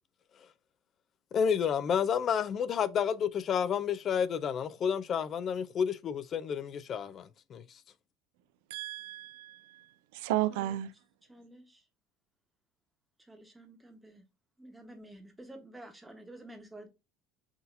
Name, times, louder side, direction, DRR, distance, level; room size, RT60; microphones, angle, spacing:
voice 1, 1.3-7.6, left 7 dB, 35° left, 0.3 m, -30 dB
voice 2, 8.7-10.9, right 14 dB, 90° right, 0.4 m, -34 dB
voice 3, 11.3-11.8 13.2-14.2 14.6-16.9, right 1 dB, 5° right, 1.0 m, -50 dB
5.8 x 2.7 x 2.6 m
cardioid pair, 150°, 0 cm